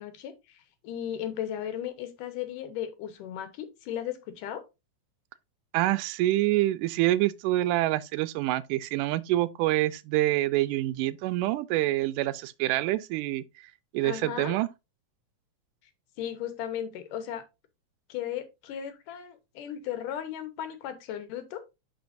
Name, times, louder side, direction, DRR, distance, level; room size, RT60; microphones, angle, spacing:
voice 1, 0.0-4.6 14.0-14.6 16.2-17.4 18.1-21.6, left 10 dB, 90° left, 2.7 m, -36 dB
voice 2, 5.7-13.4 13.9-14.7, right 16 dB, 85° right, 2.1 m, -26 dB
10.5 x 4.5 x 2.6 m
omnidirectional pair, 3.6 m